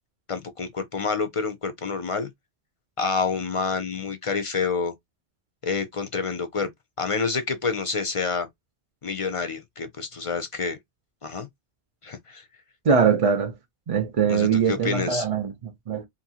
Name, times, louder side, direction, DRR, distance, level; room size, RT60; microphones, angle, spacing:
voice 1, 0.3-2.3 3.0-4.9 5.6-6.7 7.0-8.5 9.0-10.8 11.2-11.5 12.0-12.4 14.3-15.3, left 5 dB, 55° left, 0.4 m, -28 dB
voice 2, 12.8-13.6 13.9-16.0, right 6 dB, 45° right, 0.5 m, -22 dB
2.7 x 2.6 x 2.7 m
omnidirectional pair, 1.1 m